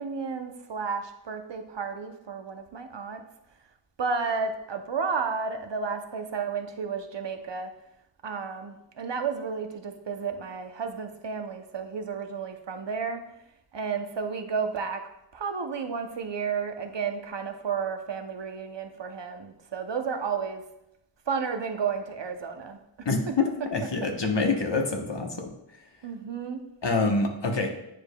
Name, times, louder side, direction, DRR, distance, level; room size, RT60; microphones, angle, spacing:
voice 1, 0.0-3.2 4.0-7.7 8.2-13.3 13.7-20.6 21.3-22.8 23.3-23.4 26.0-26.6, right 5 dB, 65° right, 5 dB, 0.7 m, -32 dB
voice 2, 23.7-25.5 26.8-27.7, left 3 dB, 65° left, 2 dB, 1.0 m, -26 dB
9.2 x 4.9 x 2.2 m, 0.83 s
wide cardioid pair, 45°, 46 cm